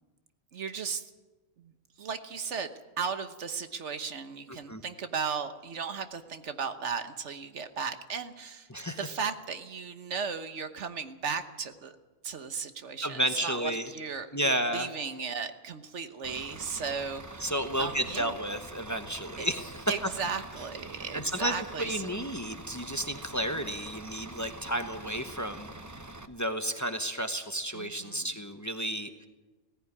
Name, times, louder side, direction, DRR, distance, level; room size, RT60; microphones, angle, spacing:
voice 1, 0.5-1.0 1.6-1.7 2.0-2.7 3.0-8.7 9.0-11.9 12.2-18.3 19.4-19.5 19.9-22.1 27.7-28.3, right 6 dB, 75° right, 9 dB, 1.4 m, -36 dB
voice 2, 4.5-4.8 8.7-9.1 13.0-13.9 14.3-14.9 17.4-19.9 21.1-25.7 26.3-29.1, right 1 dB, 15° left, 7 dB, 1.0 m, -32 dB
Bus / Idling, 16.2-26.3, right 2 dB, 15° right, 0.8 m, -45 dB
17.5 x 15.5 x 9.7 m, 1.2 s
omnidirectional pair, 1.2 m